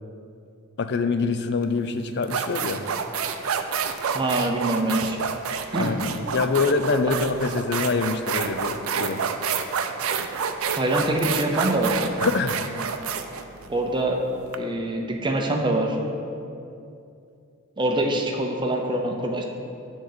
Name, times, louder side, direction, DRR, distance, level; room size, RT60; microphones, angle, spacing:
voice 1, 0.8-2.8 5.8-9.2 12.2-12.6, left 4 dB, 55° left, 9 dB, 0.5 m, -25 dB
sound 1, 1.6-1.8 2.2-14.6, right 6 dB, 75° right, 0.5 m, -28 dB
voice 2, 4.1-5.2 5.7-5.9 10.7-11.9 12.8-12.9 13.7-14.2 14.6-16.0 17.8-19.4, right 1 dB, 20° right, 2 dB, 0.7 m, -24 dB
9.8 x 3.9 x 6.7 m, 2.6 s
head